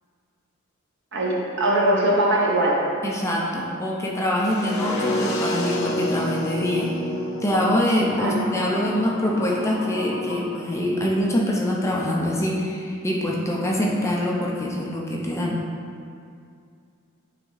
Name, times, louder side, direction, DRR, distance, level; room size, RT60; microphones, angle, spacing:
voice 1, 1.1-2.8 8.2-8.5, right 1 dB, 55° right, -3 dB, 1.2 m, -21 dB
voice 2, 3.0-6.9 7.4-15.6, left 1 dB, 15° left, -3 dB, 0.6 m, -24 dB
sound 1, 4.4-10.4, left 1 dB, 70° left, 0.7 m, -29 dB
8.8 x 3.7 x 4.0 m, 2.4 s
head